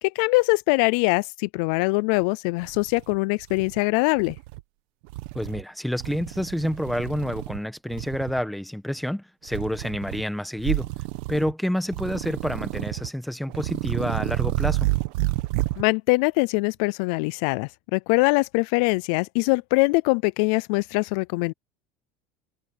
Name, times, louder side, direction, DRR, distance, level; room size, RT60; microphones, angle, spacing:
voice 1, 0.0-4.4 15.8-21.5, left 27 dB, 60° left, 0.3 m, -23 dB
sound 1, 2.2-2.3 2.6-3.8 4.2-4.6 5.1-5.6 6.0-7.6 7.9-8.4 9.5-10.2 10.6-11.5 11.9-13.1 13.5-15.8, right 19 dB, 65° right, 1.1 m, -30 dB
voice 2, 5.3-10.9 11.3-14.9, equal, ahead, 1.2 m, -28 dB
cardioid pair, 175°, 5 cm